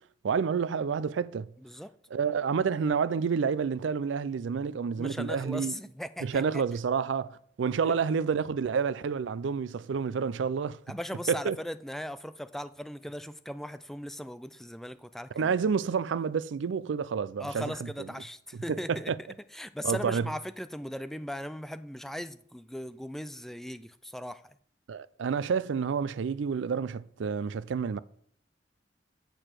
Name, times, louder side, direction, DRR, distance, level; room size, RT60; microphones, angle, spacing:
voice 1, 0.2-1.5 2.1-5.8 6.2-10.8 11.3-11.6 15.4-17.9 18.7-19.2 19.8-20.3 24.9-28.0, right 6 dB, 80° right, 0.4 m, -29 dB
voice 2, 1.6-1.9 5.0-6.6 7.8-7.9 10.9-15.5 17.4-19.1 19.5-24.4, equal, ahead, 0.3 m, -38 dB
6.8 x 6.6 x 5.8 m
head